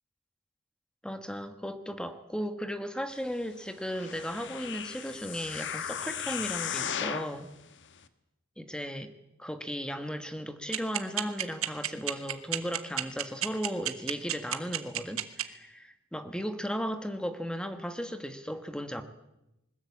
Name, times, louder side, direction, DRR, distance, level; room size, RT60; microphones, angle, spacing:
voice 1, 1.0-7.5 8.6-9.1 9.4-19.0, equal, 5° left, 9 dB, 1.4 m, -36 dB
sound 1, 3.8-7.4 8.0-8.1, left 8 dB, 55° left, 1.3 m, -36 dB
sound 2, 10.7-15.4, right 12 dB, 70° right, 1.5 m, -29 dB
21.0 x 20.0 x 8.5 m, 0.91 s
head